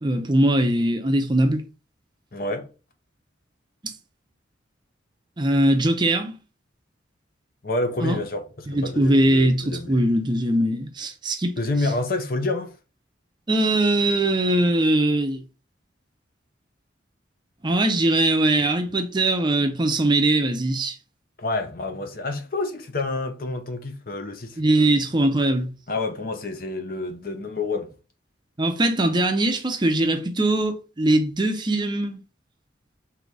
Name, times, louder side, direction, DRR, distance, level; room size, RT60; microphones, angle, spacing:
voice 1, 0.0-1.6 3.8-4.0 5.4-6.4 8.0-8.2 8.7-11.6 13.5-15.4 17.6-21.0 24.6-25.7 28.6-32.2, right 1 dB, 25° right, 0.6 m, -21 dB
voice 2, 2.3-2.7 7.6-10.0 11.6-12.7 21.4-24.6 25.9-27.9, left 2 dB, 50° left, 0.7 m, -28 dB
3.9 x 2.8 x 4.6 m
head